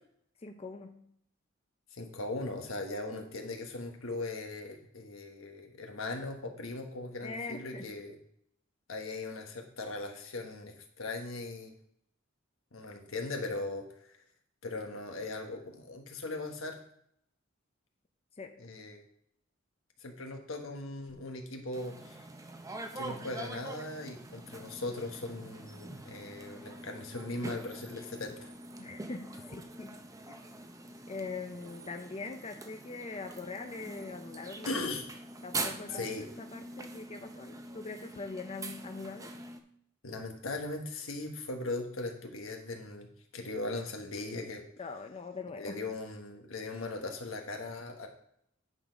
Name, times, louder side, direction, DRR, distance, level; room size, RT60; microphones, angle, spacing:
voice 1, 0.4-1.1 7.2-7.9 18.4-18.6 28.8-30.0 30.3-30.4 31.1-35.0 35.4-36.0 36.4-39.3 44.8-45.8, left 3 dB, 30° left, 5 dB, 0.6 m, -42 dB
voice 2, 1.9-8.2 8.9-11.7 12.7-14.2 14.6-16.8 18.6-19.0 20.0-22.2 22.9-28.5 34.6-35.0 35.9-36.3 40.0-44.6 45.6-48.1, left 2 dB, 80° left, 4 dB, 1.3 m, -39 dB
sound 1, 21.7-39.6, right 2 dB, 15° right, 0.6 m, -44 dB
9.9 x 4.0 x 5.1 m, 0.72 s
head